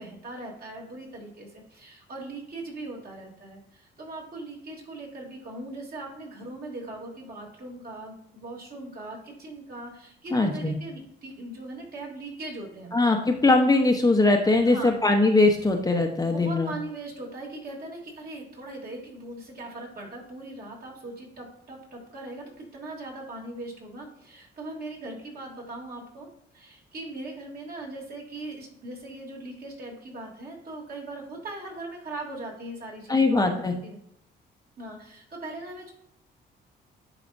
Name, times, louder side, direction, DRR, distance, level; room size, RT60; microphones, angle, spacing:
voice 1, 0.0-12.9 14.6-15.0 16.2-26.3 26.5-34.0 34.8-35.9, right 2 dB, 50° right, -2 dB, 2.7 m, -40 dB
voice 2, 10.3-10.8 12.9-16.7 33.1-33.7, left 2 dB, 20° left, 2 dB, 0.9 m, -21 dB
10.5 x 4.1 x 2.6 m, 0.71 s
cardioid pair, 90°, 20 cm